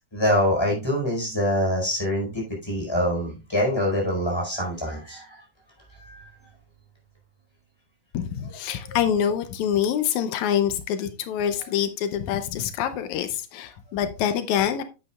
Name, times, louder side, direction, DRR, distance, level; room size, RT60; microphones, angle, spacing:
voice 1, 0.1-5.4 6.0-6.3, equal, 10° left, 4.2 m, -25 dB
voice 2, 8.1-14.8, left 9 dB, 85° left, 2.1 m, -25 dB
10.0 x 8.6 x 2.3 m
omnidirectional pair, 3.3 m